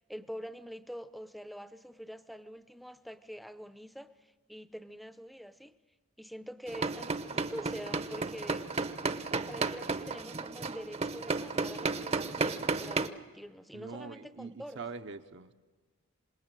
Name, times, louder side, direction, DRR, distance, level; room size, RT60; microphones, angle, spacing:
voice 1, 0.0-5.7 6.2-8.9 9.5-14.8, equal, ahead, 0.7 m, -45 dB
sound 1, 6.7-13.1, right 3 dB, 30° right, 0.8 m, -33 dB
voice 2, 13.7-15.5, right 4 dB, 60° right, 0.9 m, -43 dB
27.0 x 19.5 x 9.0 m
head